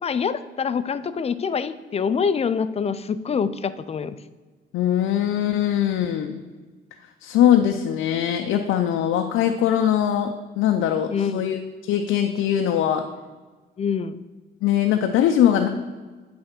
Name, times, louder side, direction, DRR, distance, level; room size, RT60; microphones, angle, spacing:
voice 1, 0.0-4.2 11.1-11.4 13.8-14.2, left 6 dB, 30° left, 13 dB, 0.4 m, -25 dB
voice 2, 4.7-6.4 7.2-13.1 14.6-15.7, left 10 dB, 85° left, 5 dB, 0.5 m, -21 dB
8.7 x 3.5 x 5.9 m, 1.3 s
cardioid pair, 90°, 20 cm